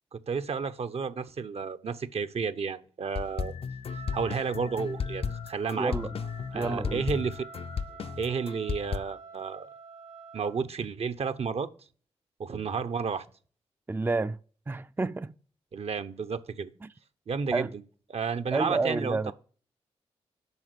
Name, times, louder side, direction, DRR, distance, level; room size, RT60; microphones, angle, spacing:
voice 1, 0.1-3.5 4.1-5.9 6.5-7.5 8.2-9.7 10.3-11.7 12.4-13.2 15.7-16.7 17.3-17.7 18.1-19.3, right 5 dB, 60° right, 0.9 m, -31 dB
sound 1, 3.1-9.0, left 6 dB, 55° left, 0.6 m, -34 dB
Wind instrument woodwind instrument, 3.9-10.7, right 7 dB, 80° right, 3.0 m, -49 dB
voice 2, 5.8-6.1 6.5-7.1 13.9-14.4 14.7-15.3 16.8-16.9 17.5-17.7 18.5-19.3, right 3 dB, 15° right, 0.5 m, -29 dB
8.5 x 5.8 x 6.7 m
supercardioid pair, 45°, 12 cm